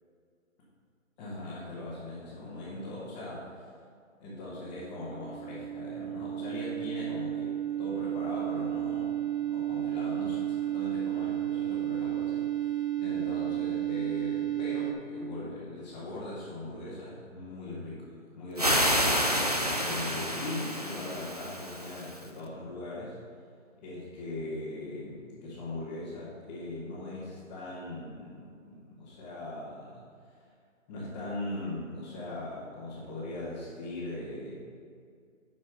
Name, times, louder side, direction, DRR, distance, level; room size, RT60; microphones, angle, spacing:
voice 1, 1.2-3.7 4.2-18.0 18.3-23.2 23.8-30.4 30.9-34.5, left 2 dB, 10° left, -11 dB, 0.9 m, -40 dB
sound 1, 4.7-14.9, right 12 dB, 85° right, 1.9 m, -32 dB
sound 2, 18.6-22.2, equal, 30° right, 0.4 m, -29 dB
11.0 x 4.2 x 5.8 m, 2.2 s
figure-of-eight pair, 150°, 40 cm